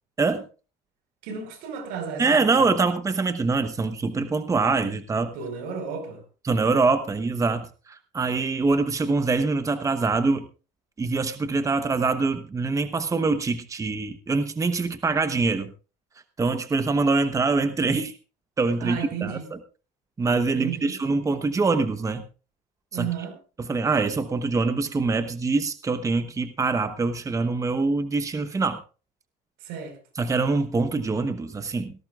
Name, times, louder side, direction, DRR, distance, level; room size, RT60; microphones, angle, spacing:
voice 1, 1.2-2.7 5.3-6.2 18.8-19.5 20.5-21.0 22.9-23.4 29.6-30.0, right 7 dB, 80° right, 5.0 m, -33 dB
voice 2, 2.2-5.3 6.4-10.5 11.0-15.7 16.4-18.1 18.6-19.4 20.2-22.2 22.9-23.1 23.6-28.8 30.2-31.9, right 3 dB, 20° right, 1.0 m, -24 dB
18.5 x 16.0 x 2.5 m
cardioid pair, 105°, 16 cm